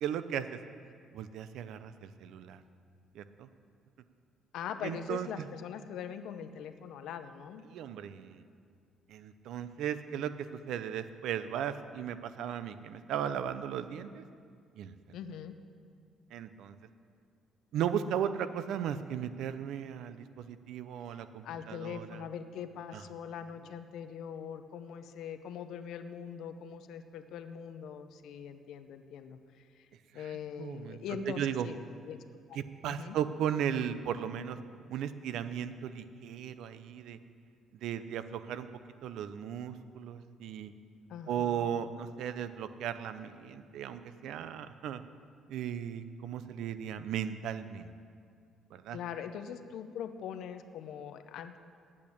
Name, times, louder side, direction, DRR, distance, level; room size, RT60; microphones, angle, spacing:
voice 1, 0.0-0.6 1.1-2.6 3.1-3.5 4.8-5.5 7.7-8.4 9.1-14.2 14.8-15.2 16.3-16.7 17.7-22.2 22.9-23.0 30.1-31.0 31.2-31.7 32.5-34.6 34.9-37.2 37.8-38.7 39.0-40.7 41.3-45.0 45.5-47.9 48.7-49.0, right 9 dB, 75° right, 12 dB, 0.6 m, -36 dB
voice 2, 4.5-7.6 12.4-12.5 15.1-15.5 21.1-29.9 30.1-31.8 32.0-32.2 32.5-32.6 32.9-33.2 41.1-41.7 48.9-51.6, left 7 dB, 75° left, 9 dB, 0.7 m, -42 dB
8.6 x 8.6 x 8.6 m, 2.2 s
cardioid pair, 145°, 0 cm